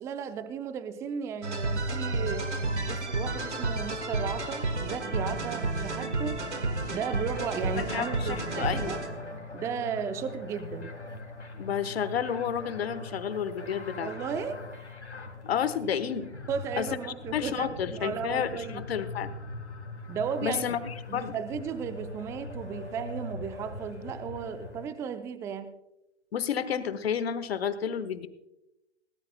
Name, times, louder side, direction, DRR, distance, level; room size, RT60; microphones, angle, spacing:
voice 1, 0.0-2.5 2.9-6.4 6.9-9.0 9.5-10.9 14.0-14.6 16.5-18.8 20.1-20.6 21.1-25.7, right 7 dB, 10° right, 11 dB, 0.4 m, -35 dB
sound 1, 1.4-9.3, right 2 dB, 85° right, 1.9 m, -31 dB
sound 2, 7.2-24.9, left 3 dB, 85° left, 2.7 m, -42 dB
voice 2, 7.9-8.9 11.6-14.1 15.5-16.3 16.8-16.9 17.3-19.3 20.4-21.4 26.3-28.3, left 8 dB, 60° left, 13 dB, 1.3 m, -31 dB
19.5 x 17.5 x 2.2 m, 0.91 s
figure-of-eight pair, 115°, 34 cm